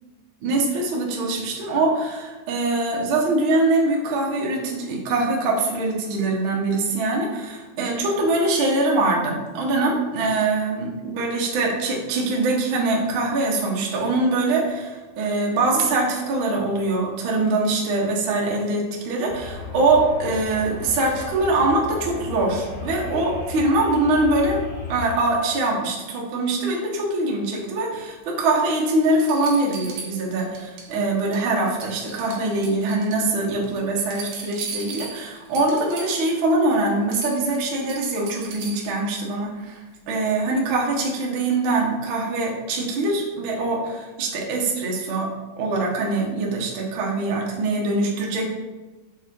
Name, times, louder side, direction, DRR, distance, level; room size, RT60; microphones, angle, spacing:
voice 1, 0.4-24.6 24.9-39.8 40.1-45.3 45.6-48.5, right 2 dB, 90° right, -2 dB, 1.1 m, -23 dB
sound 1, 19.3-25.2, left 2 dB, 60° left, 1.0 m, -35 dB
sound 2, 28.5-28.6 29.2-30.9 31.2-31.5 31.8-33.2 33.6-36.4 36.7-36.8 37.1-39.0 40.7-40.8, right 4 dB, 70° right, 2.7 m, -37 dB
6.4 x 4.7 x 3.6 m, 1.2 s
omnidirectional pair, 4.2 m